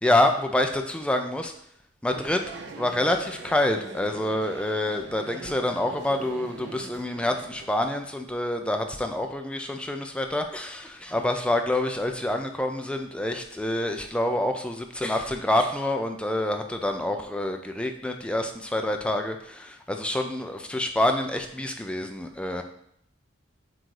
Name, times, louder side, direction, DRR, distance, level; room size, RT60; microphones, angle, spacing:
voice 1, 0.0-1.5 2.0-2.4 2.7-22.6, left 1 dB, 5° left, 4 dB, 0.5 m, -27 dB
sound 1, 2.1-7.7, right 2 dB, 60° right, 0.8 m, -42 dB
7.7 x 2.7 x 4.7 m, 0.71 s
head